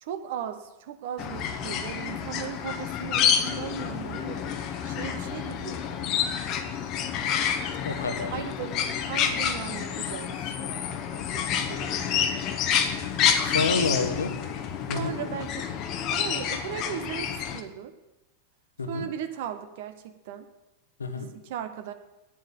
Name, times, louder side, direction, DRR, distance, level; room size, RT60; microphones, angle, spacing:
voice 1, 0.0-4.5 4.8-5.8 8.3-8.8 9.1-12.3 13.8-13.9 14.9-15.5 16.1-17.9 18.9-20.5 21.1-21.9, right 9 dB, 50° right, 9 dB, 1.0 m, -37 dB
sound 1, 1.2-17.6, left 8 dB, 40° left, 0.9 m, -28 dB
voice 2, 7.8-8.3 13.4-14.3 14.9-15.2 18.8-19.1 21.0-21.3, left 4 dB, 75° left, 7 dB, 1.2 m, -28 dB
9.4 x 7.6 x 8.4 m, 0.95 s
figure-of-eight pair, 90°, 0 cm